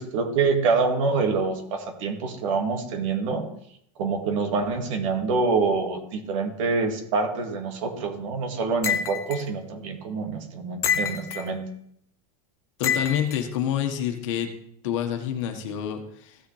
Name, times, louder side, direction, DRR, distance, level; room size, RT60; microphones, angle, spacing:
voice 1, 0.0-3.5 4.0-11.6, right 4 dB, 55° right, 3 dB, 2.0 m, -26 dB
sound 1, 8.8-9.4 10.8-11.5 12.8-13.4, left 7 dB, 15° left, 0.4 m, -26 dB
voice 2, 12.8-14.5 14.8-16.4, left 9 dB, 50° left, 5 dB, 1.5 m, -28 dB
16.0 x 6.5 x 3.3 m, 0.68 s
supercardioid pair, 165°, 20 cm